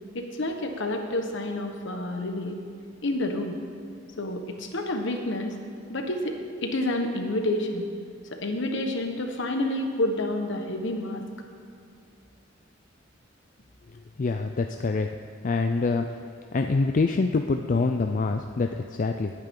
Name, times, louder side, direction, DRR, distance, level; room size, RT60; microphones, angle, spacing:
voice 1, 0.1-2.6 3.0-3.6 4.2-5.5 5.9-6.3 6.6-7.9 8.3-11.2, left 1 dB, 65° left, 4 dB, 1.3 m, -29 dB
voice 2, 14.2-15.1 15.4-16.2 16.5-19.3, left 3 dB, 40° left, 5 dB, 0.4 m, -25 dB
19.0 x 9.0 x 3.8 m, 2.5 s
head